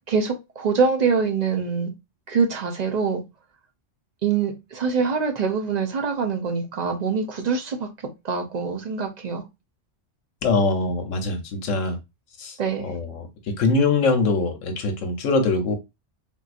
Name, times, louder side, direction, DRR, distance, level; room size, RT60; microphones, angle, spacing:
voice 1, 0.1-1.9 2.3-3.2 4.2-7.9 8.2-9.4 12.6-12.9, right 5 dB, 45° right, 0.6 m, -24 dB
voice 2, 10.4-12.0 12.4-13.3 13.6-15.8, left 3 dB, 85° left, 1.1 m, -23 dB
3.7 x 2.7 x 2.4 m
omnidirectional pair, 1.3 m